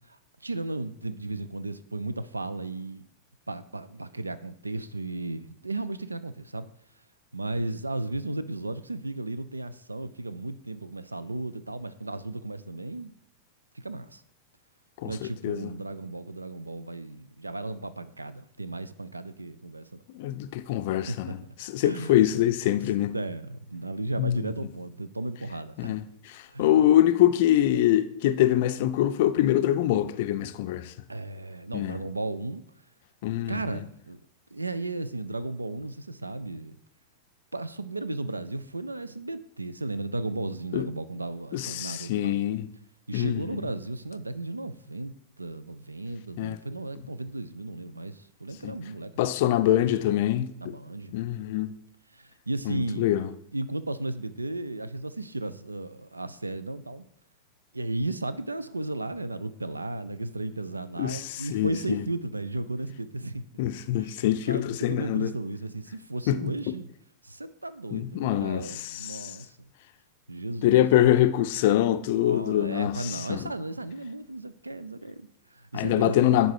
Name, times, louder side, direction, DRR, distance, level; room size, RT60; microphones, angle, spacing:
voice 1, 0.1-3.0 3.5-6.7 7.3-13.1 13.7-14.2 15.0-20.0 21.1-21.4 21.8-22.2 23.1-26.0 26.5-26.9 31.1-32.6 33.5-34.2 34.5-36.8 37.5-42.4 43.1-49.7 50.6-51.1 52.1-53.1 53.5-57.0 57.7-63.4 63.9-66.9 67.2-69.7 70.3-71.1 72.2-76.5, right 2 dB, 80° right, 0.4 m, -35 dB
voice 2, 15.0-15.7 20.1-23.1 24.2-24.4 25.8-26.0 26.6-30.9 31.7-32.0 33.2-33.5 40.7-40.9 41.5-42.7 43.1-43.6 46.4-46.6 48.6-48.8 49.2-50.8 51.1-51.7 52.7-53.3 61.0-62.0 63.6-65.3 66.3-66.5 67.9-69.3 70.6-73.5 75.7-76.5, left 12 dB, 50° left, 0.4 m, -24 dB
10.0 x 3.9 x 4.7 m
figure-of-eight pair, 90°, 0 cm